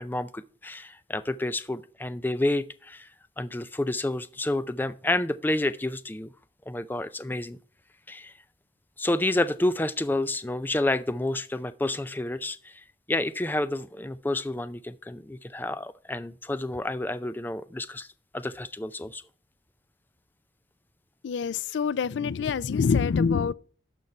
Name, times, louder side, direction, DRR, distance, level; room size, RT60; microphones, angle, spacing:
voice 1, 0.0-3.1 3.4-6.3 6.7-7.6 8.1-8.3 9.0-18.1 18.3-19.2, left 1 dB, 10° left, 0.4 m, -29 dB
voice 2, 21.2-23.5, left 5 dB, 90° left, 0.4 m, -25 dB
12.0 x 5.3 x 4.3 m
head